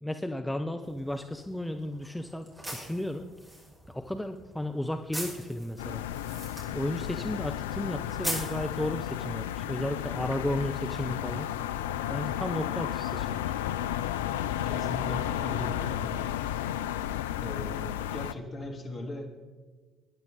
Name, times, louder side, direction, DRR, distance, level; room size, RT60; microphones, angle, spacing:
voice 1, 0.0-3.3 3.9-6.0 6.7-11.5 12.1-13.4, left 1 dB, 5° left, 7 dB, 0.7 m, -34 dB
sound 1, 0.8-9.4, right 1 dB, 15° right, 5.6 m, -42 dB
sound 2, 5.8-18.3, left 11 dB, 70° left, 0.3 m, -33 dB
voice 2, 14.6-16.1 17.4-19.3, left 2 dB, 40° left, 2 dB, 2.8 m, -38 dB
20.5 x 10.5 x 4.1 m, 1.4 s
figure-of-eight pair, 50°, 0 cm